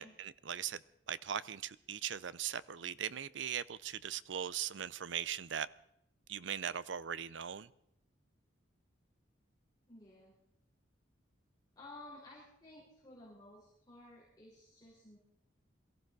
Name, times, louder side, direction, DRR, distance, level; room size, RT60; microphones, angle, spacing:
voice 1, 0.0-5.7 6.3-7.7, right 9 dB, 65° right, 0.5 m, -40 dB
voice 2, 9.9-10.3 11.8-15.2, left 2 dB, 20° left, 4.5 m, -55 dB
22.5 x 15.0 x 4.0 m
head